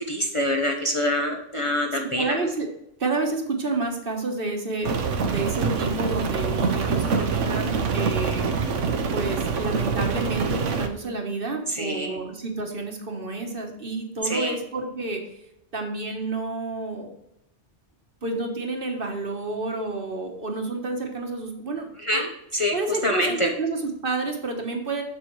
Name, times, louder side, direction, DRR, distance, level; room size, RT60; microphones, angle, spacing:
voice 1, 0.1-2.4 7.0-7.3 11.7-12.2 14.2-14.6 22.0-23.5, left 1 dB, 30° left, 0 dB, 0.8 m, -26 dB
voice 2, 1.9-2.7 3.0-8.4 9.1-15.2 15.7-17.1 18.2-22.2 22.7-25.0, right 3 dB, 50° right, 3 dB, 1.3 m, -30 dB
Rain, 4.8-10.9, right 5 dB, 85° right, 1.1 m, -25 dB
7.2 x 6.8 x 3.0 m, 0.79 s
omnidirectional pair, 1.2 m